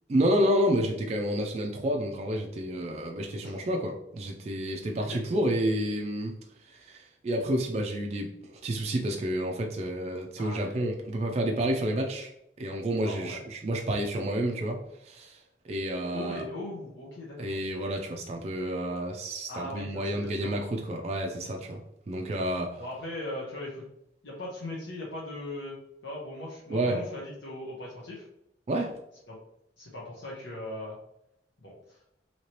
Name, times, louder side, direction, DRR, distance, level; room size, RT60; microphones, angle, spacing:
voice 1, 0.1-6.3 6.7-12.3 12.6-14.8 15.0-15.4 15.6-16.4 17.4-21.8 22.1-22.8 26.7-27.0 28.7-28.9, right 1 dB, 35° right, 2 dB, 0.3 m, -29 dB
voice 2, 10.4-10.9 13.0-13.4 16.1-17.6 19.5-20.5 22.8-23.8 24.2-25.8 26.0-28.3 29.3-29.4 29.8-31.0 31.6-32.0, left 1 dB, 85° left, -5 dB, 0.8 m, -39 dB
3.1 x 2.8 x 2.8 m, 0.80 s
head